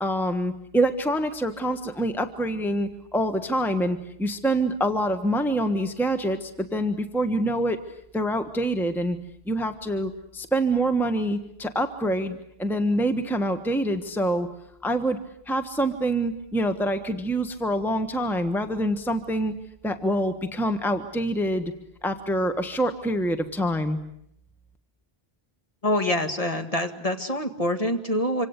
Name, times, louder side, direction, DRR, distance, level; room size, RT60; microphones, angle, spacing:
voice 1, 0.0-7.8 8.1-9.2 9.5-14.5 14.8-15.2 15.5-19.5 19.8-21.7 22.0-24.0, right 1 dB, ahead, 8 dB, 1.3 m, -26 dB
voice 2, 25.8-28.5, left 1 dB, 35° left, 5 dB, 2.1 m, -25 dB
26.5 x 25.5 x 8.3 m, 0.73 s
omnidirectional pair, 1.1 m